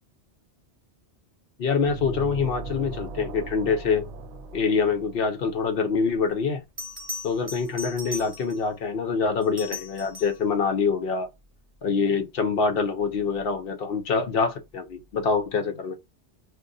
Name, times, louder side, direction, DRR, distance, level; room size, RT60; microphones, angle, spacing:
voice 1, 1.6-4.1 4.5-6.6 7.2-11.3 11.8-16.0, left 5 dB, 65° left, 0.7 m, -25 dB
sound 1, 1.8-5.7, right 3 dB, 75° right, 0.8 m, -38 dB
Bell, 6.8-8.7 9.4-10.5 13.2-13.4, left 2 dB, 20° right, 1.1 m, -38 dB
2.5 x 2.3 x 3.6 m
omnidirectional pair, 1.2 m